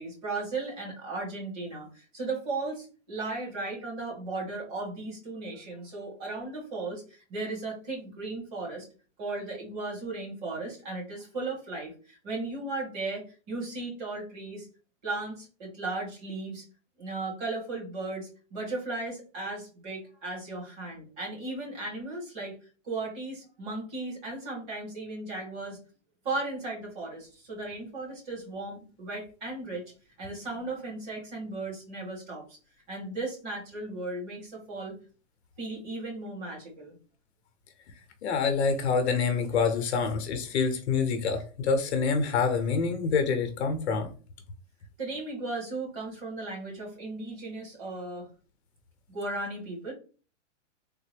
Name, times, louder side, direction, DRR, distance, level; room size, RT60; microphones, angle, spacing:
voice 1, 0.0-8.9 9.2-14.7 15.0-16.6 17.0-22.6 22.8-25.8 26.2-29.8 30.2-32.6 32.9-35.0 35.6-37.0 45.0-48.3 49.1-49.9, right 2 dB, 35° right, -3 dB, 1.9 m, -36 dB
voice 2, 38.2-44.1, left 5 dB, 55° left, 7 dB, 0.8 m, -26 dB
3.6 x 2.1 x 3.3 m, 0.36 s
hypercardioid pair, 160°, 38 cm